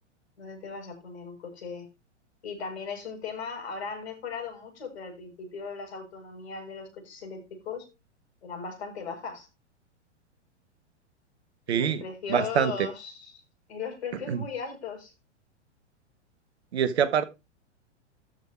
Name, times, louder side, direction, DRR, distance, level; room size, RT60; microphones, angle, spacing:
voice 1, 0.4-1.9 2.4-7.9 8.4-9.5 11.7-13.3 13.7-15.1, left 5 dB, 60° left, 7.0 m, -37 dB
voice 2, 11.7-12.0 12.3-12.7 14.3-14.4 16.7-17.2, right 8 dB, 60° right, 1.5 m, -24 dB
13.5 x 5.7 x 4.7 m
figure-of-eight pair, 105°, 36 cm